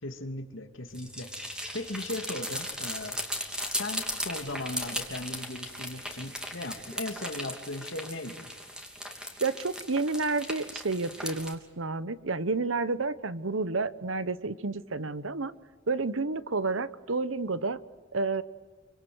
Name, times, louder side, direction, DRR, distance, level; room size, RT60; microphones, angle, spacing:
voice 1, 0.0-3.2 3.5-8.5, left 2 dB, 70° left, 6 dB, 2.6 m, -38 dB
sound 1, 0.9-11.5, equal, 5° right, 3.1 m, -37 dB
voice 2, 9.4-15.5 15.9-17.8 18.1-18.4, right 3 dB, 75° right, 15 dB, 1.1 m, -30 dB
27.5 x 25.5 x 7.9 m, 1.4 s
head